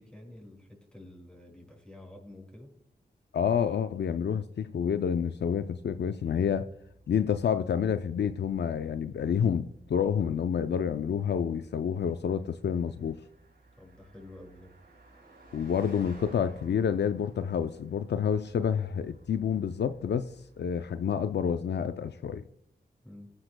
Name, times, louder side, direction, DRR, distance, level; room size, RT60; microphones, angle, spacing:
voice 1, 0.0-2.8 13.8-14.7 23.0-23.3, left 1 dB, 5° left, 1 dB, 5.4 m, -49 dB
voice 2, 3.3-6.7 7.1-13.2 15.5-22.4, left 7 dB, 75° left, 10 dB, 0.5 m, -29 dB
Car passing by, 5.7-21.5, right 2 dB, 85° right, 4.9 m, -57 dB
18.5 x 9.9 x 2.2 m, 0.70 s
cardioid pair, 40°, 18 cm